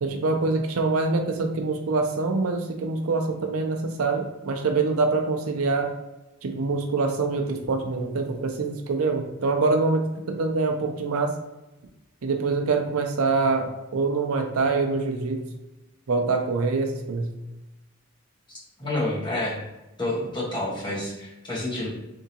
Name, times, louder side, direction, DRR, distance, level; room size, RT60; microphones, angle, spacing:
voice 1, 0.0-5.9 6.4-11.3 12.2-15.4 16.1-17.3, right 3 dB, 80° right, 4 dB, 0.5 m, -25 dB
voice 2, 18.8-19.6 20.0-21.9, left 1 dB, 20° left, -7 dB, 1.4 m, -28 dB
3.7 x 3.5 x 2.9 m, 0.99 s
head